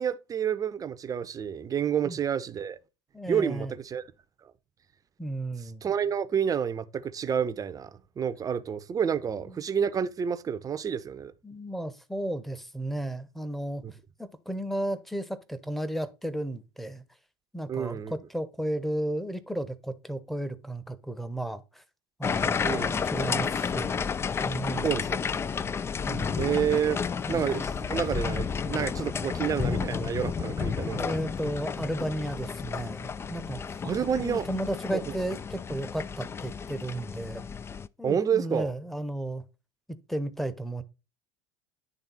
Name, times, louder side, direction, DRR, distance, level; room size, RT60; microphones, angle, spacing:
voice 1, 0.0-2.8 3.3-4.0 5.8-7.9 8.2-11.3 13.8-13.9 17.7-18.1 22.6-23.0 24.8-25.2 26.4-27.0 27.3-31.2 33.8-34.5 34.9-35.2 38.0-38.7, right 8 dB, 25° right, 0.7 m, -29 dB
voice 2, 3.1-3.7 5.2-5.9 9.3-9.6 11.4-13.8 14.2-17.0 17.5-21.8 22.2-24.1 24.4-24.9 26.1-26.5 27.3-27.5 30.8-33.8 34.1-37.4 38.0-39.4 40.1-40.8, right 1 dB, ahead, 0.9 m, -34 dB
sound 1, 22.2-37.9, left 6 dB, 20° left, 0.3 m, -31 dB
9.9 x 3.6 x 4.1 m
hypercardioid pair, 75°, 13 cm